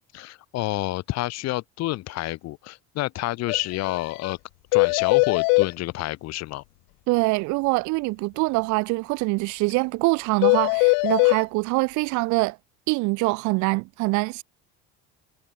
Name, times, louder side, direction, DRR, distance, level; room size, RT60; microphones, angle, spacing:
voice 1, 0.1-4.4 4.7-6.6, left 17 dB, 55° left, 3.7 m, -29 dB
sound 1, 3.5-3.6 3.8-4.0 4.2-4.3 4.7-5.7 10.4-11.4, left 33 dB, 80° left, 0.7 m, -20 dB
voice 2, 7.1-12.6 12.9-14.4, right 25 dB, 65° right, 0.9 m, -24 dB
cardioid pair, 165°, 32 cm